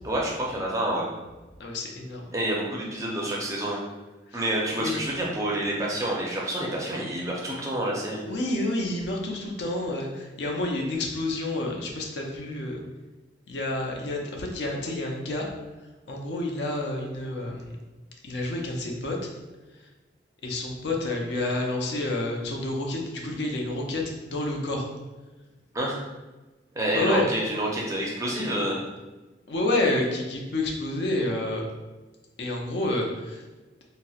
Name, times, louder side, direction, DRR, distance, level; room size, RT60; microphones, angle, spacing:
voice 1, 0.0-1.1 2.3-3.8 4.3-8.2 25.7-26.0 26.8-28.8, right 1 dB, 15° right, -3 dB, 0.4 m, -28 dB
voice 2, 1.6-2.3 4.3-4.5 4.8-5.0 8.3-12.8 13.5-15.5 16.1-17.8 18.2-19.2 19.8-19.9 20.4-24.8 26.9-27.3 29.5-31.6 32.4-33.4, left 2 dB, 70° left, 0 dB, 0.5 m, -29 dB
4.1 x 2.0 x 2.3 m, 1.2 s
head